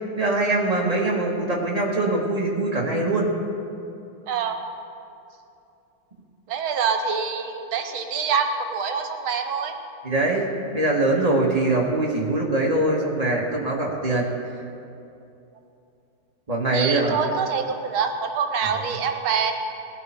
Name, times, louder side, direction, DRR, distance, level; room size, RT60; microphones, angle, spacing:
voice 1, 0.2-3.3 10.0-14.3 16.5-17.2 18.6-18.9, right 2 dB, 20° right, -2 dB, 1.5 m, -23 dB
voice 2, 4.3-4.6 6.5-9.7 16.7-19.5, right 6 dB, 80° right, 6 dB, 1.8 m, -25 dB
18.5 x 12.0 x 4.5 m, 2.7 s
omnidirectional pair, 2.3 m